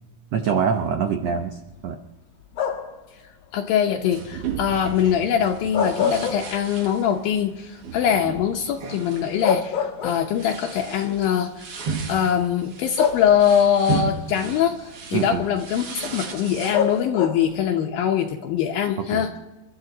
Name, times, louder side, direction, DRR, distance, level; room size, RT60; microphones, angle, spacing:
voice 1, 0.3-2.0 15.1-15.4 19.0-19.3, right 6 dB, 80° right, 5 dB, 1.4 m, -25 dB
sound 1, 2.5-3.1 5.5-6.9 7.3-7.4 9.0-9.1 9.4-10.6 11.6-11.7 13.0-13.7 16.7-17.6, left 7 dB, 55° left, 2.1 m, -26 dB
voice 2, 3.5-19.4, left 9 dB, 75° left, 2 dB, 2.6 m, -23 dB
sound 2, 4.1-17.0, right 5 dB, 50° right, 1.8 m, -35 dB
29.0 x 12.5 x 3.9 m, 1.1 s
omnidirectional pair, 4.3 m